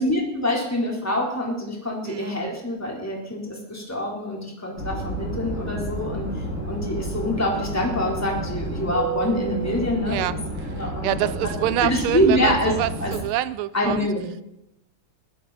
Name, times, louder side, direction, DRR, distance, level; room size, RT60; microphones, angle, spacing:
voice 1, 0.0-10.3 10.7-11.3 11.8-12.7 13.0-13.1 13.7-14.3, left 1 dB, 5° left, -2 dB, 3.7 m, -25 dB
sound 1, 4.8-13.2, right 1 dB, 45° left, 6.0 m, -31 dB
voice 2, 11.0-14.1, right 13 dB, 90° right, 16 dB, 1.6 m, -26 dB
20.5 x 14.0 x 4.2 m, 0.85 s
omnidirectional pair, 2.3 m